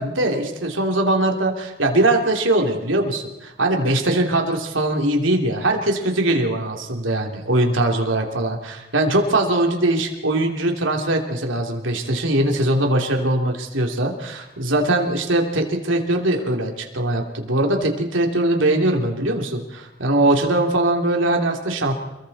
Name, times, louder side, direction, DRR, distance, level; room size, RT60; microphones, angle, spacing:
voice 1, 0.0-21.9, right 1 dB, 80° right, 2 dB, 3.2 m, -21 dB
29.0 x 22.0 x 4.3 m, 1.0 s
head